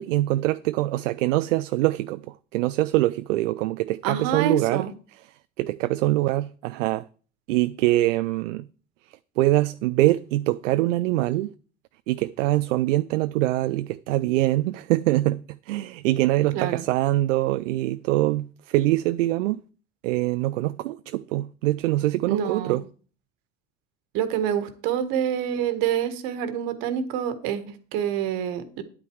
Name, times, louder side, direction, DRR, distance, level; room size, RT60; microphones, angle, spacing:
voice 1, 0.0-4.9 5.6-7.1 7.5-8.7 9.4-11.5 12.1-19.6 20.0-22.9, right 17 dB, 80° right, 0.5 m, -24 dB
voice 2, 4.0-4.9 16.5-16.8 22.3-22.8 24.1-28.8, right 9 dB, 65° right, 1.6 m, -27 dB
10.0 x 8.5 x 4.7 m
hypercardioid pair, 75°, 37 cm